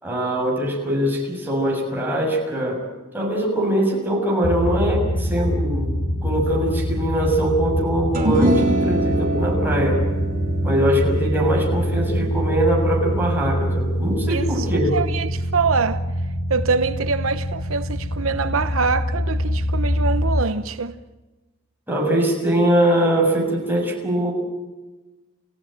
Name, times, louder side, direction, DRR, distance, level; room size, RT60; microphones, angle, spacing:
voice 1, 0.0-2.8 3.1-6.0 6.2-10.0 10.6-15.0 21.9-24.3, right 1 dB, 10° right, 7.0 m, -22 dB
sound 1, 4.4-20.4, equal, 75° left, 1.4 m, -24 dB
sound 2, 8.1-14.7, right 2 dB, 45° right, 3.6 m, -26 dB
voice 2, 14.3-14.7 14.9-16.0 16.5-20.9, right 4 dB, 75° right, 0.9 m, -24 dB
29.5 x 16.0 x 8.9 m
head